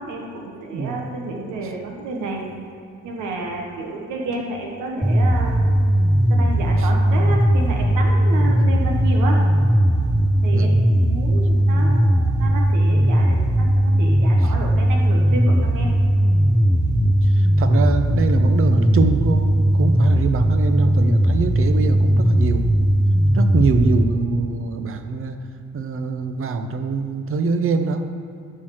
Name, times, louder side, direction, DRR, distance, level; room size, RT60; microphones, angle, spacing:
voice 1, 0.0-2.4 3.0-5.6 6.3-9.4 10.4-15.9, right 2 dB, 90° right, 0 dB, 1.4 m, -30 dB
voice 2, 0.7-1.1 6.8-6.9 10.5-10.8 14.4-14.5 16.9-22.7 23.3-25.4 25.7-28.1, right 4 dB, 45° right, 7 dB, 0.8 m, -24 dB
sound 1, 5.0-24.0, right 1 dB, 5° right, 0.4 m, -18 dB
11.0 x 4.5 x 7.4 m, 2.6 s
cardioid pair, 90°, 30 cm